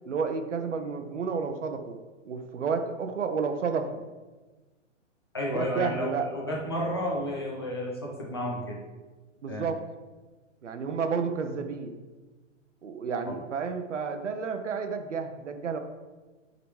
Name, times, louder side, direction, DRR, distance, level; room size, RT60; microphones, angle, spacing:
voice 1, 0.1-2.0 2.3-3.9 5.5-6.3 9.4-9.8 10.6-11.9 12.8-15.8, right 5 dB, 70° right, 7 dB, 0.8 m, -31 dB
voice 2, 5.3-8.8 9.5-9.7 13.2-13.4, left 1 dB, 20° left, -4 dB, 0.6 m, -32 dB
6.3 x 4.0 x 4.8 m, 1.3 s
hypercardioid pair, 175°, 38 cm